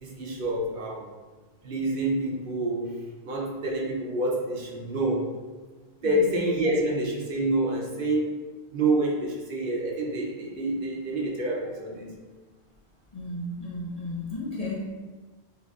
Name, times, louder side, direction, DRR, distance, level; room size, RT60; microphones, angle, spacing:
voice 1, 0.0-1.1 1.6-5.3 6.0-8.4 8.7-12.1, right 1 dB, 60° right, -2 dB, 0.8 m, -27 dB
voice 2, 6.0-6.4 13.1-14.9, left 2 dB, 40° left, -5 dB, 0.6 m, -34 dB
6.1 x 2.6 x 2.4 m, 1.3 s
omnidirectional pair, 1.1 m